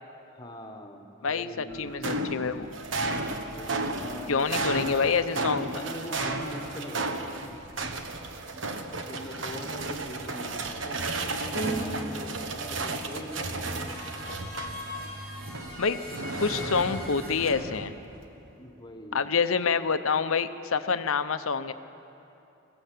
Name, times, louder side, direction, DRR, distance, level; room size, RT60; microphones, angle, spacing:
voice 1, 0.3-2.2 3.4-4.9 5.6-7.6 9.0-14.1 18.6-19.3, equal, 20° left, 3 dB, 1.5 m, -42 dB
voice 2, 1.2-2.7 4.3-5.8 15.8-16.0 16.4-18.0 19.1-21.7, left 5 dB, 80° left, 11 dB, 0.8 m, -27 dB
sound 1, 1.7-15.1 15.4-18.2, right 2 dB, 65° right, 1.3 m, -34 dB
sound 2, 11.5-11.7 13.1-17.5, equal, 80° right, 3.7 m, -38 dB
21.5 x 15.0 x 8.4 m, 2.9 s
head